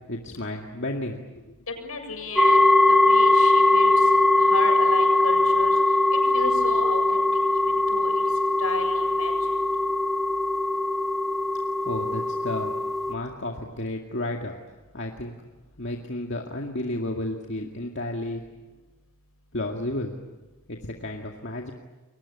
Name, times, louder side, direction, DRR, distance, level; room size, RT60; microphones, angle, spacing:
voice 1, 0.1-1.4 11.8-12.7 13.1-14.5 14.9-15.3 15.8-18.4 19.5-20.1 20.7-21.7, left 1 dB, 55° left, 1 dB, 2.2 m, -32 dB
voice 2, 1.7-7.2 7.5-8.2 8.6-9.5, left 3 dB, 80° left, 4 dB, 7.6 m, -34 dB
sound 1, 2.4-13.1, left 2 dB, ahead, 1.5 m, -21 dB
29.5 x 23.5 x 8.6 m, 1.1 s
head